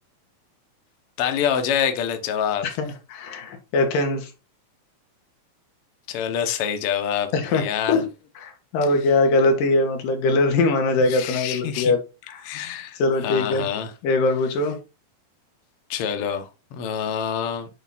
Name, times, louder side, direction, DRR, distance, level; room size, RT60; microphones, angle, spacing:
voice 1, 1.2-2.7 6.1-8.0 11.1-11.9 12.4-13.9 15.9-17.7, left 8 dB, 90° left, 1.2 m, -26 dB
voice 2, 2.6-4.3 7.3-8.1 8.4-12.0 12.3-12.6 13.0-13.7 14.0-14.8, left 2 dB, 70° left, 2.9 m, -22 dB
8.8 x 3.6 x 4.1 m
omnidirectional pair, 4.1 m